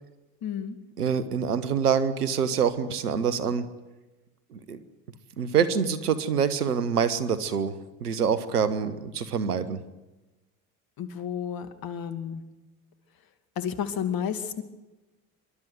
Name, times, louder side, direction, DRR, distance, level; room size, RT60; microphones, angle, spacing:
voice 1, 0.4-0.8 11.0-12.4 13.6-14.6, left 8 dB, 50° left, 10 dB, 2.5 m, -31 dB
voice 2, 1.0-3.7 4.5-4.8 5.4-9.8, right 7 dB, 90° right, 14 dB, 1.4 m, -26 dB
27.5 x 12.5 x 9.5 m, 1.1 s
hypercardioid pair, 65°, 45 cm